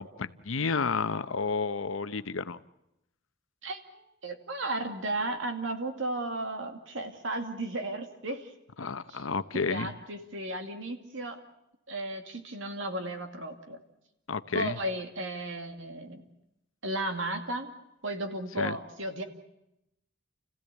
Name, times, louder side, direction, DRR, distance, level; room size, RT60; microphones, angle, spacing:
voice 1, 0.0-2.6 8.8-9.9 14.3-14.8 18.6-18.8, left 4 dB, 80° left, 13 dB, 0.8 m, -31 dB
voice 2, 3.6-8.5 9.1-9.3 9.5-11.4 11.9-13.8 14.5-16.2 16.8-17.7 18.0-19.2, right 1 dB, 65° right, 6 dB, 2.4 m, -34 dB
29.5 x 15.5 x 8.4 m, 0.88 s
head